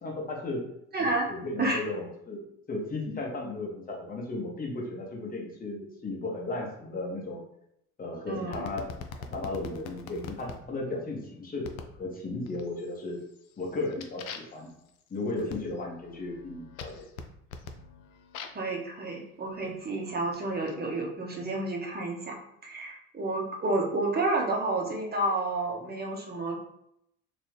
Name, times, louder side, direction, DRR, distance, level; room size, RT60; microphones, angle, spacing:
voice 1, 0.0-0.6 1.0-2.4 2.7-7.4 8.0-11.7 12.0-13.2 13.6-14.7 15.1-17.0, left 2 dB, 20° left, -2 dB, 1.1 m, -35 dB
voice 2, 0.9-1.3 1.6-1.8 8.3-8.7 18.5-26.6, right 2 dB, 20° right, 0 dB, 0.9 m, -30 dB
sound 1, 8.5-10.6 11.6-12.0 12.4-12.9 13.3-18.7 19.5-20.7, left 5 dB, 75° left, 0.5 m, -44 dB
3.0 x 2.2 x 3.3 m, 0.77 s
figure-of-eight pair, 60°, 43 cm